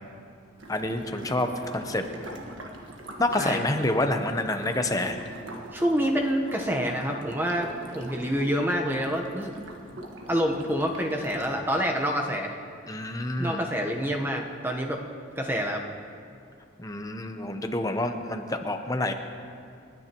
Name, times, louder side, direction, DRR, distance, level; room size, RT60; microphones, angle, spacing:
sound 1, 0.6-11.5, right 1 dB, 90° right, 1.4 m, -43 dB
voice 1, 0.7-2.3 3.2-5.2 12.9-13.6 16.8-19.1, left 1 dB, 20° left, 6 dB, 0.7 m, -28 dB
voice 2, 3.4-3.8 5.7-9.5 10.3-12.5 13.4-15.0 15.4-15.8, equal, 10° right, 1 dB, 0.9 m, -27 dB
29.0 x 9.8 x 3.0 m, 2.3 s
head